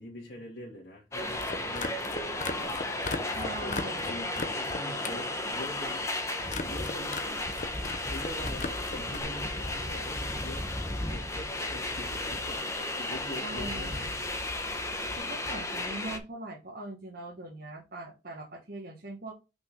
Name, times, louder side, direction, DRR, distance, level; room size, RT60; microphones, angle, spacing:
voice 1, 0.0-2.8 3.4-6.0 6.6-7.3 8.1-10.7 11.0-14.1, left 1 dB, 65° left, -5 dB, 2.6 m, -44 dB
sound 1, 1.1-16.2, left 2 dB, 15° left, 1.1 m, -34 dB
sound 2, 1.3-5.2 5.5-6.0 6.5-7.2 7.5-9.2, left 3 dB, 40° left, 0.8 m, -37 dB
voice 2, 3.2-4.2 13.4-14.1 14.8-19.3, right 2 dB, 55° right, -2 dB, 1.6 m, -41 dB
5.9 x 5.6 x 3.7 m, 0.27 s
head